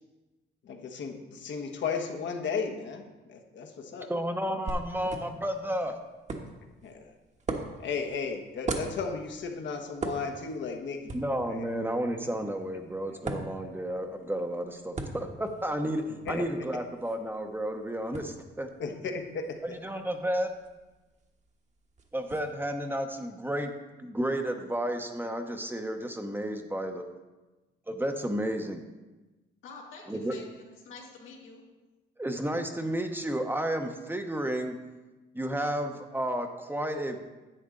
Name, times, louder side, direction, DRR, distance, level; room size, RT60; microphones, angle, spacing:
voice 1, 0.6-4.1 6.8-7.1 7.8-11.2 11.4-11.7 13.3-13.4 16.2-16.4 18.8-19.8, left 5 dB, 70° left, 3 dB, 1.3 m, -35 dB
voice 2, 4.1-6.0 11.1-18.7 19.6-20.5 22.1-23.7 24.0-27.1 27.9-28.8 30.1-30.3 32.2-34.8 35.3-37.2, right 1 dB, 10° right, 5 dB, 0.9 m, -32 dB
sound 1, 4.7-22.4, right 3 dB, 35° right, 1.3 m, -42 dB
voice 3, 29.6-31.6, left 4 dB, 85° left, -2 dB, 2.3 m, -48 dB
10.5 x 7.7 x 3.8 m, 1.1 s
cardioid pair, 90°, 20 cm